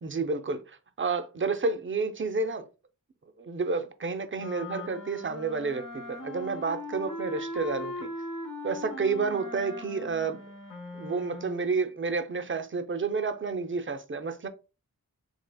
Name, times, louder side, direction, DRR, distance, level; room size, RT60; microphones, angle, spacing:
voice 1, 0.0-2.6 3.4-8.1 8.6-10.4 10.9-14.5, right 4 dB, 35° right, 0.4 m, -30 dB
sound 1, 4.3-11.7, left 2 dB, 60° left, 0.9 m, -39 dB
3.4 x 3.2 x 2.2 m
wide cardioid pair, 80°, 36 cm